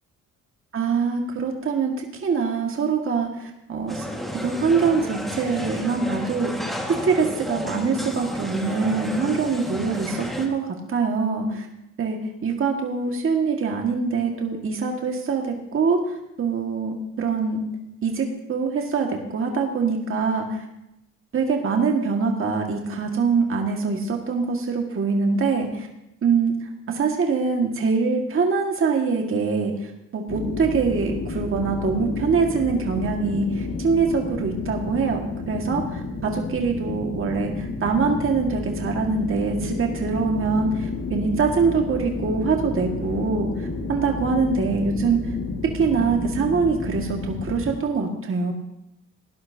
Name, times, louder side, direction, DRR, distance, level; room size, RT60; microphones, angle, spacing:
voice 1, 0.7-4.1 4.4-6.7 7.0-10.6 10.9-11.7 12.0-16.0 16.4-17.7 18.0-20.6 21.3-25.9 26.2-26.6 26.9-43.5 43.9-45.2 45.7-48.5, right 5 dB, 45° right, 1 dB, 1.9 m, -24 dB
sound 1, 3.9-10.5, equal, ahead, 1.8 m, -32 dB
sound 2, 30.3-47.8, left 3 dB, 55° left, 2.1 m, -31 dB
18.0 x 11.5 x 2.8 m, 0.86 s
cardioid pair, 90°, 30 cm